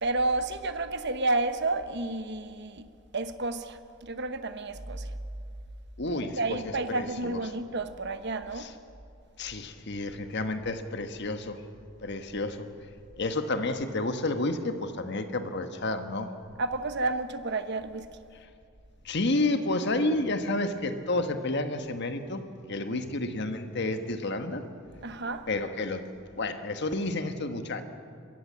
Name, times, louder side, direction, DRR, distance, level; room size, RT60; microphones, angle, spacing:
voice 1, 0.0-2.8 3.1-5.1 6.0-8.7 16.6-18.1 22.9-23.0 25.0-25.4, right 2 dB, 55° right, 10 dB, 1.1 m, -31 dB
voice 2, 6.0-7.4 8.5-8.7 9.4-11.6 12.0-12.7 13.2-16.3 19.0-24.6 25.5-26.1 26.4-27.8, left 2 dB, 55° left, 8 dB, 1.4 m, -30 dB
22.0 x 15.5 x 7.6 m, 2.5 s
head